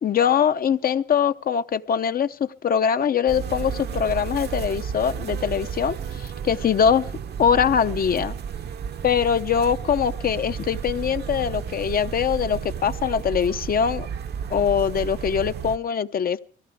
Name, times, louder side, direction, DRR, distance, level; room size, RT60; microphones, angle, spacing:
voice 1, 0.0-7.1 7.4-8.3 9.0-14.1 14.5-16.4, left 7 dB, 50° left, 0.7 m, -22 dB
sound 1, 3.3-15.8, right 7 dB, 55° right, 0.8 m, -32 dB
22.5 x 16.5 x 3.5 m
cardioid pair, 90°, 20 cm